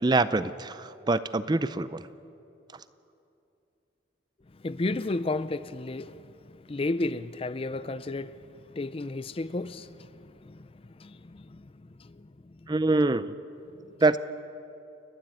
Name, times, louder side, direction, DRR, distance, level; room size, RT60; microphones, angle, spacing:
voice 1, 0.0-2.1 12.7-13.3 14.0-14.2, right 2 dB, 20° right, 0.5 m, -25 dB
voice 2, 4.6-6.3 6.7-8.3 8.7-10.7 11.0-11.7 12.0-12.3, left 2 dB, 30° left, 0.5 m, -33 dB
29.5 x 12.0 x 9.2 m
head